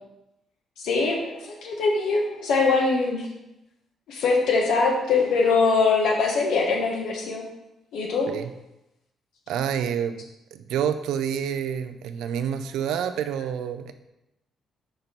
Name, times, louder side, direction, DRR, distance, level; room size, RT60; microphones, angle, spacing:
voice 1, 0.8-3.3 4.1-7.4 7.9-8.3, left 4 dB, 80° left, 0 dB, 1.4 m, -22 dB
voice 2, 9.5-10.2 10.5-13.9, right 8 dB, 85° right, 10 dB, 0.5 m, -28 dB
5.4 x 5.1 x 4.5 m, 0.91 s
cardioid pair, 90°, 0 cm